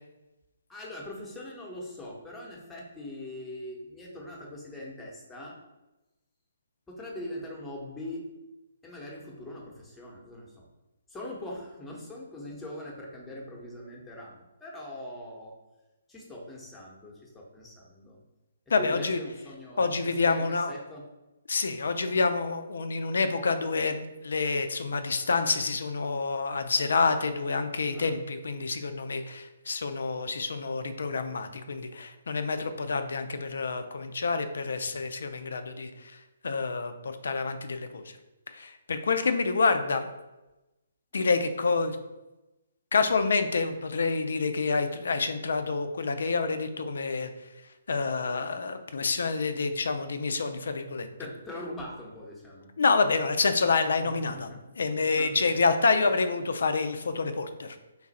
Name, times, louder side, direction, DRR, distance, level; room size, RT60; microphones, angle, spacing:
voice 1, 0.7-5.6 6.9-8.2 8.8-10.7 11.1-15.6 16.1-18.2 18.8-19.9 20.2-21.0 27.9-28.2 51.2-52.7 54.0-54.5 54.8-55.4, left 1 dB, 10° left, -3 dB, 0.9 m, -42 dB
voice 2, 18.7-19.2 19.8-20.7 21.5-38.2 38.5-40.1 41.1-42.0 42.9-51.1 52.8-57.8, left 4 dB, 65° left, 8 dB, 0.4 m, -28 dB
3.8 x 2.4 x 4.1 m, 1.0 s
figure-of-eight pair, 135°, 0 cm